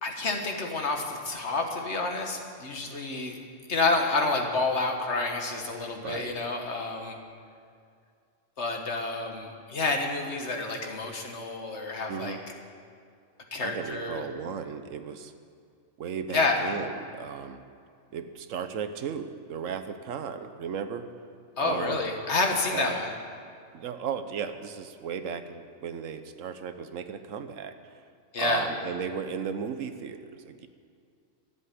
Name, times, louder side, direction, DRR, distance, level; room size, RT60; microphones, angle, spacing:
voice 1, 0.0-3.4 3.7-7.2 8.6-12.4 13.5-14.2 16.3-16.6 21.6-23.1 28.3-28.7, left 3 dB, 60° left, 2 dB, 1.8 m, -29 dB
voice 2, 6.0-6.4 12.1-12.4 13.6-15.3 16.0-17.6 18.1-21.1 21.6-22.0 22.7-23.0 23.7-27.9 28.4-30.7, right 7 dB, 85° right, 9 dB, 1.2 m, -35 dB
13.5 x 7.9 x 9.7 m, 2.3 s
omnidirectional pair, 1.3 m